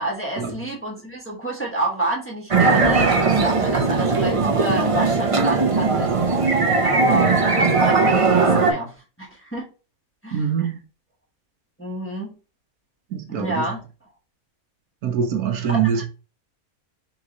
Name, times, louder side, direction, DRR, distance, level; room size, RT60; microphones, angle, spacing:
voice 1, 0.0-6.1 6.8-9.7 10.2-10.4 11.8-12.4 13.3-13.8 15.7-16.0, right 2 dB, 10° left, 1.1 m, -29 dB
sound 1, 2.5-8.7, right 4 dB, 50° right, 0.4 m, -18 dB
voice 2, 10.3-10.8 13.1-13.7 15.0-16.0, right 7 dB, 80° right, 1.2 m, -23 dB
4.0 x 3.0 x 3.8 m
omnidirectional pair, 1.6 m